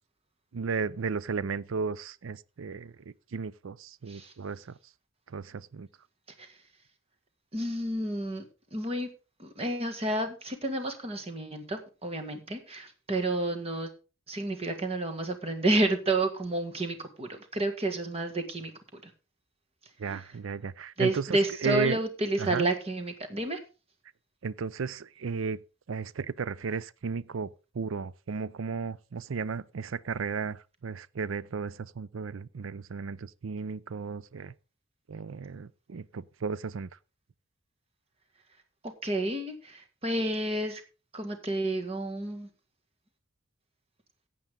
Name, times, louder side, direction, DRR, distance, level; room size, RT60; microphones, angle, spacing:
voice 1, 0.5-2.9 3.3-4.7 5.3-5.9 20.0-22.0 22.4-22.7 24.4-25.6 25.9-27.5 27.7-34.5 35.1-36.9, right 5 dB, 80° right, 0.5 m, -34 dB
voice 2, 7.5-8.4 8.7-9.1 9.4-13.9 14.3-19.0 21.0-23.6 39.0-40.8 41.1-42.5, right 2 dB, 30° right, 2.0 m, -30 dB
15.0 x 8.6 x 3.7 m
head